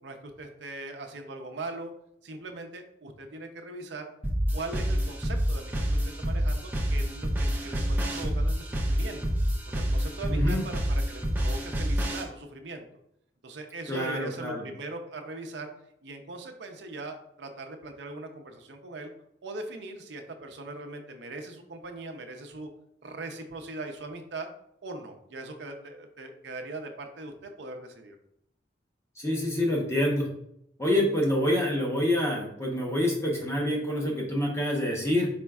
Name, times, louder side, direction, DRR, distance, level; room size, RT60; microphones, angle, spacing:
voice 1, 0.0-1.9 2.2-4.1 4.5-5.7 6.2-9.2 9.8-12.9 13.4-15.7 16.0-19.1 19.4-22.7 23.0-24.5 24.8-28.2, right 2 dB, 75° right, 5 dB, 0.6 m, -40 dB
sound 1, 4.2-12.2, equal, 10° right, 0.5 m, -28 dB
voice 2, 10.3-10.7 13.9-14.6 29.2-30.3 30.8-35.3, left 1 dB, 15° left, -2 dB, 0.8 m, -27 dB
5.0 x 4.3 x 2.3 m, 0.75 s
head